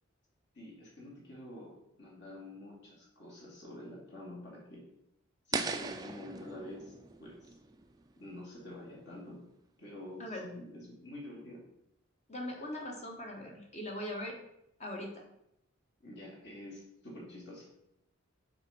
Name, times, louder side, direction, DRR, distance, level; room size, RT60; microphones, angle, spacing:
voice 1, 0.5-1.7 2.0-4.8 5.5-6.9 7.2-7.6 8.2-9.4 9.8-11.6 16.0-17.7, left 1 dB, 55° left, -4 dB, 2.7 m, -47 dB
sound 1, 5.5-8.6, right 4 dB, 20° right, 0.4 m, -39 dB
voice 2, 12.3-14.4 14.8-15.2, left 1 dB, 30° left, 1 dB, 1.1 m, -40 dB
7.1 x 4.3 x 5.2 m, 0.83 s
head